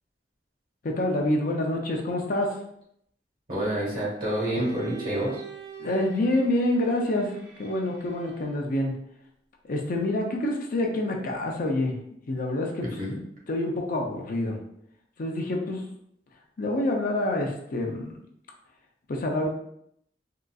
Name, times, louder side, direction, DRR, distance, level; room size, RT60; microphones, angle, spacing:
voice 1, 0.8-2.6 5.8-7.3 7.6-8.9 9.7-12.0 12.3-12.8 13.5-14.6 15.2-15.8 16.6-18.1 19.1-19.5, left 1 dB, 50° left, 1 dB, 0.5 m, -27 dB
voice 2, 3.5-5.4 12.8-13.2, right 1 dB, 55° right, -5 dB, 1.4 m, -28 dB
Bowed string instrument, 4.2-8.7, right 5 dB, 85° right, 0.6 m, -45 dB
3.7 x 2.4 x 2.3 m, 0.73 s
head